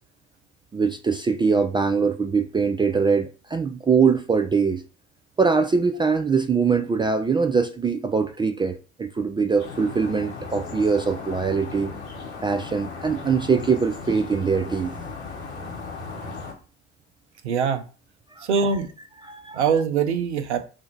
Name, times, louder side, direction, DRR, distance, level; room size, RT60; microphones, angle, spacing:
voice 1, 0.7-4.8 5.4-11.9 12.4-14.9 18.4-18.5 19.2-19.6, right 5 dB, 15° right, 0.4 m, -22 dB
sound 1, 9.6-16.5, left 4 dB, 85° left, 1.0 m, -36 dB
voice 2, 17.4-17.8 18.4-18.9 19.5-20.6, right 6 dB, 85° right, 0.6 m, -22 dB
3.7 x 2.7 x 4.3 m
figure-of-eight pair, 60°, 33 cm